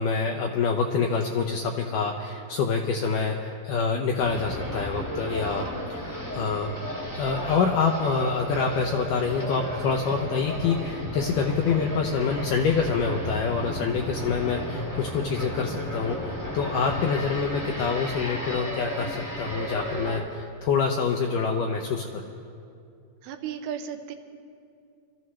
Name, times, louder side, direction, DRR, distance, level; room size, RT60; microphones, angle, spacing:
voice 1, 0.0-6.7 7.1-22.2, left 5 dB, 80° left, 2 dB, 1.9 m, -26 dB
sound 1, 4.2-20.2, equal, 15° left, 0.6 m, -33 dB
voice 2, 23.2-24.2, right 8 dB, 80° right, 5 dB, 2.7 m, -34 dB
26.5 x 14.0 x 3.2 m, 2.5 s
omnidirectional pair, 4.5 m